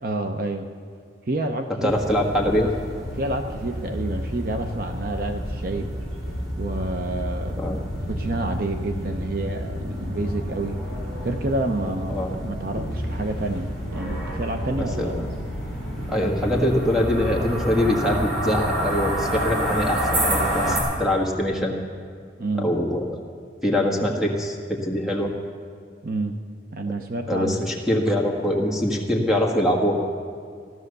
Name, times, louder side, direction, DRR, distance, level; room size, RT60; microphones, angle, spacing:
voice 1, 0.0-0.7 1.3-2.6 3.2-5.9 6.6-10.8 11.2-15.1 22.4-22.7 26.0-26.4 26.7-27.7, right 2 dB, 50° right, 5 dB, 0.7 m, -29 dB
voice 2, 1.8-2.7 7.6-7.8 12.1-12.3 14.8-15.3 16.1-21.8 22.6-23.0 23.6-25.3 27.3-30.0, left 1 dB, ahead, 0 dB, 1.6 m, -23 dB
sound 1, 1.9-20.8, equal, 75° right, 5.1 m, -29 dB
15.5 x 12.5 x 6.7 m, 2.1 s
head